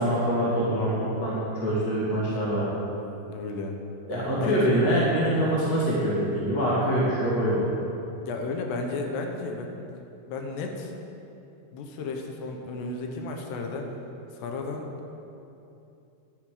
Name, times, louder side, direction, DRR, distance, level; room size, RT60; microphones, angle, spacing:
voice 1, 0.0-2.6 4.1-7.7, equal, 35° left, -6 dB, 1.7 m, -24 dB
voice 2, 2.1-2.5 3.3-3.8 4.4-4.8 8.2-9.7 10.3-10.9 11.7-13.9 14.3-14.9, left 3 dB, 90° left, 3 dB, 3.2 m, -33 dB
11.0 x 9.4 x 5.0 m, 2.8 s
omnidirectional pair, 4.7 m